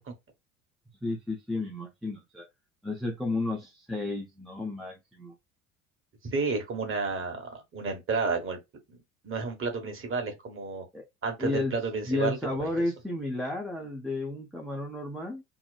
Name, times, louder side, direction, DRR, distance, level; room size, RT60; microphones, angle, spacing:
voice 1, 1.0-2.5 2.8-5.4 10.9-11.1 11.4-11.7 12.1-15.4, left 2 dB, ahead, 0.5 m, -32 dB
voice 2, 6.2-8.6 8.9-10.8 11.2-12.8, right 4 dB, 30° right, 1.2 m, -31 dB
2.9 x 2.2 x 2.3 m
figure-of-eight pair, 65°, 43 cm